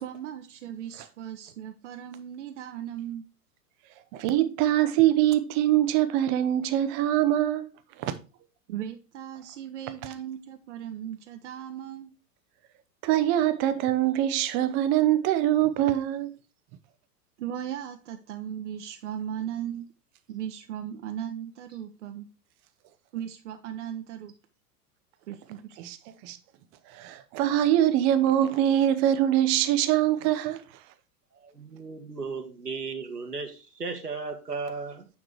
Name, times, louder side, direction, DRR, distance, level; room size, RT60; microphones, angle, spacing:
voice 1, 0.0-3.3 8.7-12.1 17.4-19.9 20.3-22.3 23.1-24.3 25.3-25.8, right 10 dB, 50° right, 0.9 m, -37 dB
voice 2, 4.1-7.7 8.0-8.1 13.0-16.3 25.8-26.4 26.9-30.6, right 12 dB, 25° right, 0.6 m, -23 dB
voice 3, 31.3-35.1, right 4 dB, 85° right, 1.6 m, -35 dB
9.3 x 3.6 x 4.6 m
figure-of-eight pair, 95°, 46 cm